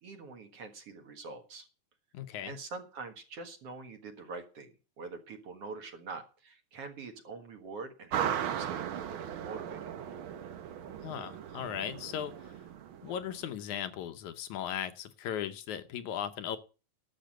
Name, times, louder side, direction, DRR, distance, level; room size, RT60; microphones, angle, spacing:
voice 1, 0.0-1.7 2.4-9.9, right 4 dB, 55° right, 6 dB, 2.4 m, -45 dB
voice 2, 2.1-2.6 11.0-12.5 13.0-16.6, left 9 dB, 75° left, 10 dB, 2.3 m, -37 dB
sound 1, 8.1-13.5, right 9 dB, 70° right, 1.2 m, -37 dB
12.0 x 7.3 x 7.6 m, 0.34 s
omnidirectional pair, 3.5 m